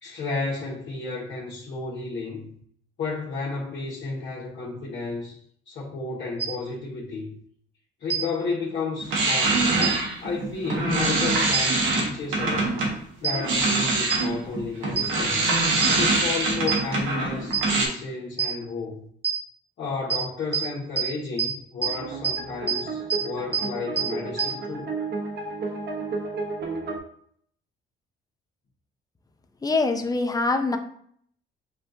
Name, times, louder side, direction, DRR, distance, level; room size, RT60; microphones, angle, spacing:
voice 1, 0.0-2.5 3.0-5.4 5.6-7.4 8.0-9.9 10.2-12.8 13.2-15.4 15.9-19.0 19.8-24.9, left 4 dB, 65° left, -8 dB, 1.3 m, -32 dB
sound 1, 6.4-6.5 8.1-8.2 9.8-9.9 11.5-11.6 13.2-13.3 14.1-14.2 15.0-15.1 15.8-15.9 16.7-16.8 17.5-17.6 18.4-18.5 19.2-19.3 20.1-20.2 20.5-20.6 21.0-21.1 21.4-21.5 21.8-21.9 22.2-22.3 22.7-22.8 23.1-23.2 23.5-23.6 24.0-24.1 24.4-24.5, right 7 dB, 30° right, 1.1 m, -23 dB
sound 2, 9.0-12.9 13.3-17.9, right 3 dB, 90° right, 1.2 m, -24 dB
sound 3, 21.8-27.0, right 3 dB, 55° right, 1.0 m, -33 dB
voice 2, 29.6-30.8, left 3 dB, 20° left, 6 dB, 0.6 m, -24 dB
7.1 x 2.5 x 2.7 m, 0.63 s
cardioid pair, 90°, 20 cm